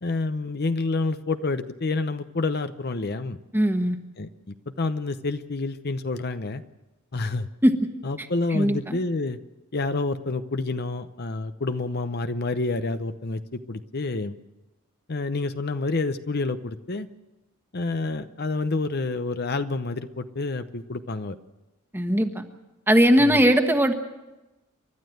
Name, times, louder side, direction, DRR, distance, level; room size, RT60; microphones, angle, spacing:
voice 1, 0.0-3.4 4.2-4.3 4.8-6.6 7.1-7.5 8.0-9.4 9.7-14.3 15.1-17.1 17.7-21.4 23.2-23.4, left 3 dB, 50° left, 10 dB, 0.8 m, -28 dB
voice 2, 3.5-4.0 7.6-7.7 8.5-9.0 21.9-22.4 22.9-23.9, equal, 10° right, 6 dB, 1.4 m, -19 dB
30.0 x 12.5 x 7.9 m, 1.1 s
head